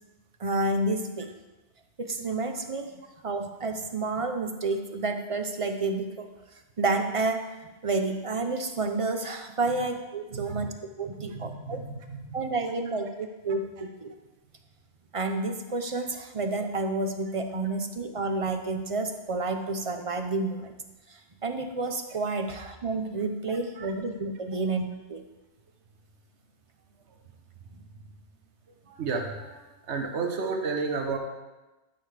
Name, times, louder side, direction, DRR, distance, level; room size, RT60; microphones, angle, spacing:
voice 1, 0.4-1.3 2.0-6.3 6.8-7.5 7.8-11.8 12.3-14.1 15.1-20.7 21.1-25.2, right 3 dB, 35° right, 6 dB, 0.6 m, -30 dB
voice 2, 10.3-10.7 11.0-12.5 23.5-23.9 27.1-27.2 28.9-31.2, right 4 dB, 85° right, 4 dB, 1.2 m, -33 dB
12.5 x 6.7 x 3.3 m, 1.1 s
omnidirectional pair, 1.1 m